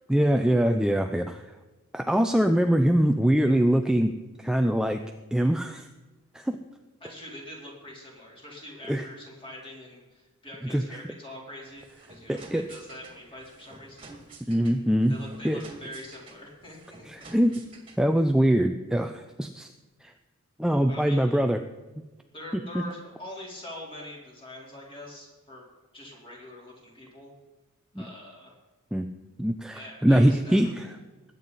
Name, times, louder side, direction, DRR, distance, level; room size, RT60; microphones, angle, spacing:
voice 1, 0.1-1.4 1.9-4.1 4.4-5.0 5.3-5.9 6.3-6.6 8.9-9.0 10.7-10.8 12.3-12.6 14.5-15.2 15.4-15.6 17.1-17.6 18.0-19.7 20.0-20.1 20.6-21.6 22.7-22.8 28.0-28.1 28.9-29.1 29.4-30.9, right 1 dB, 5° right, 5 dB, 0.4 m, -23 dB
voice 2, 7.0-11.8 12.1-12.4 12.7-14.1 15.1-17.0 20.9-21.5 22.3-25.6 25.9-27.3 28.0-28.5 29.7-30.9, left 1 dB, 25° left, -3 dB, 3.6 m, -44 dB
sound 1, 11.6-18.2, right 3 dB, 25° right, 2.0 m, -50 dB
20.5 x 9.0 x 4.1 m, 1.2 s
head